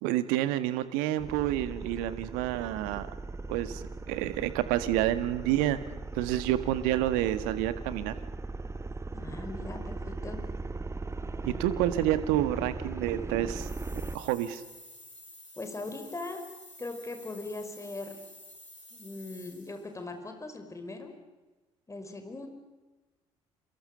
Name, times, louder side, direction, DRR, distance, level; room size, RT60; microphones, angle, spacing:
voice 1, 0.0-3.1 3.5-5.8 6.1-8.1 11.4-13.7 14.1-14.6, right 13 dB, 65° right, 13 dB, 1.6 m, -29 dB
sound 1, 1.2-14.2, right 3 dB, 15° right, 1.1 m, -38 dB
voice 2, 9.1-10.4 15.6-16.4 16.8-18.2 18.9-21.1 21.9-22.5, left 2 dB, 20° left, 5 dB, 5.3 m, -40 dB
sound 2, 13.5-19.9, left 1 dB, 90° left, 3.3 m, -51 dB
28.5 x 27.5 x 6.8 m, 1.2 s
figure-of-eight pair, 50°, 16 cm